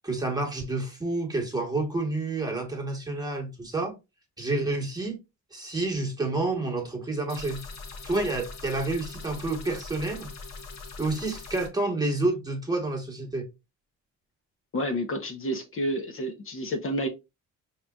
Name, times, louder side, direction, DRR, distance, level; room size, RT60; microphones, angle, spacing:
voice 1, 0.0-3.9 4.4-5.2 5.5-7.6 8.0-10.3 11.0-13.5, right 2 dB, 15° right, 1.2 m, -29 dB
sound 1, 7.3-11.7, left 3 dB, 65° left, 1.0 m, -41 dB
voice 2, 14.7-17.1, equal, 45° left, 0.8 m, -30 dB
4.8 x 2.9 x 2.3 m
cardioid pair, 90°, 30 cm